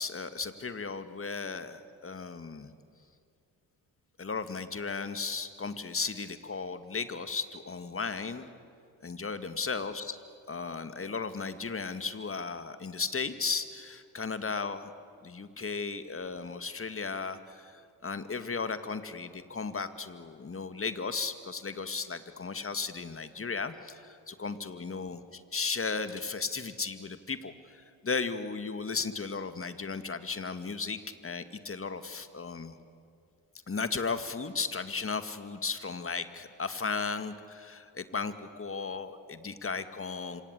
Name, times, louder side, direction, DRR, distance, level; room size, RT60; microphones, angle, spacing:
voice 1, 0.0-2.7 4.2-8.5 9.0-10.2 10.5-14.9 15.2-32.8 33.7-40.4, left 4 dB, 30° left, 10 dB, 2.2 m, -35 dB
26.5 x 26.0 x 8.4 m, 2.4 s
hypercardioid pair, 45°, 46 cm